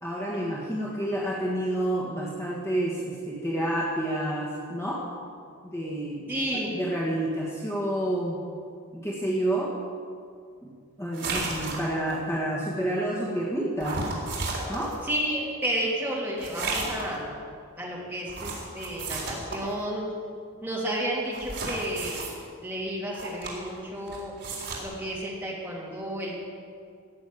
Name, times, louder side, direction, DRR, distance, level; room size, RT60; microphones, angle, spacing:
voice 1, 0.0-5.0 5.6-6.3 6.7-8.4 8.9-9.7 10.6-10.7 11.0-14.0 14.7-14.9, right 1 dB, 15° left, -6 dB, 1.9 m, -29 dB
voice 2, 6.3-6.7 15.0-17.4 17.8-20.1 20.6-22.2 22.6-24.3 24.8-26.5, equal, 10° right, -5 dB, 3.0 m, -31 dB
sound 1, 11.1-12.2 13.8-15.0 16.4-17.1 18.3-19.7 21.3-22.3 23.1-23.8 24.1-24.8, right 3 dB, 55° right, 3.9 m, -33 dB
17.0 x 6.9 x 9.4 m, 2.2 s
head